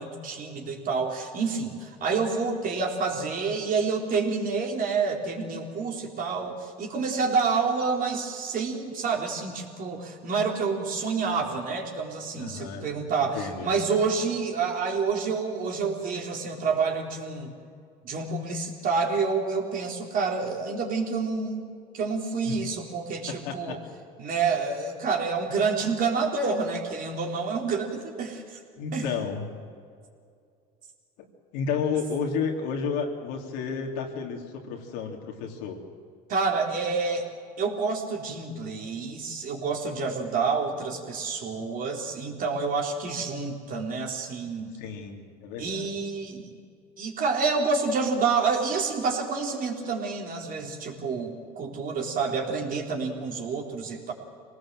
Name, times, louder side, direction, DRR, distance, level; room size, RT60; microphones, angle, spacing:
voice 1, 0.0-17.5 18.0-21.7 21.9-23.8 24.2-28.6 28.9-29.1 36.3-37.3 37.6-44.7 45.6-46.5 47.0-54.1, right 4 dB, 45° right, 0 dB, 4.1 m, -28 dB
voice 2, 12.4-12.9 13.2-13.7 22.5-22.6 23.4-23.8 28.8-29.4 31.5-35.8 44.7-45.9, left 5 dB, 80° left, 1 dB, 3.3 m, -31 dB
25.0 x 19.0 x 7.8 m, 2.3 s
supercardioid pair, 95°, 19 cm